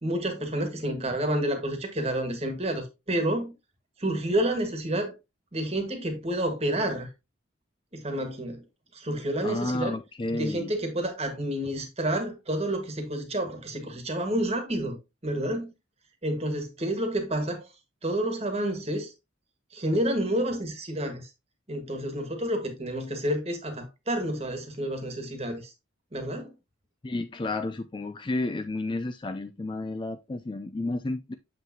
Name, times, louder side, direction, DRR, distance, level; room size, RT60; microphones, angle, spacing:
voice 1, 0.0-3.5 4.0-5.1 5.5-7.1 7.9-8.6 8.9-9.9 10.3-15.0 15.2-15.7 16.2-17.7 18.0-19.1 19.7-21.3 21.7-25.7 26.1-26.5, right 1 dB, 30° right, 1.5 m, -29 dB
voice 2, 9.4-10.7 27.0-31.3, left 2 dB, 25° left, 0.3 m, -31 dB
7.3 x 5.9 x 2.8 m
head